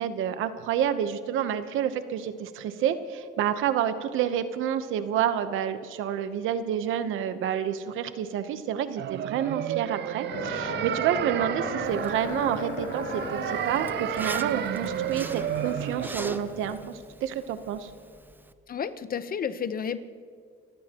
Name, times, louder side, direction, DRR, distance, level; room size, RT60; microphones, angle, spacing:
voice 1, 0.0-17.9, right 9 dB, 90° right, 11 dB, 0.9 m, -29 dB
sound 1, 9.0-16.1, right 12 dB, 60° right, 0.4 m, -32 dB
sound 2, 10.3-16.7, left 2 dB, 70° left, 4.1 m, -37 dB
Zipper (clothing), 11.8-18.5, right 2 dB, 10° right, 0.7 m, -43 dB
voice 2, 18.7-20.0, left 7 dB, 45° left, 12 dB, 0.9 m, -31 dB
27.5 x 15.0 x 3.0 m, 2.1 s
cardioid pair, 90°, 20 cm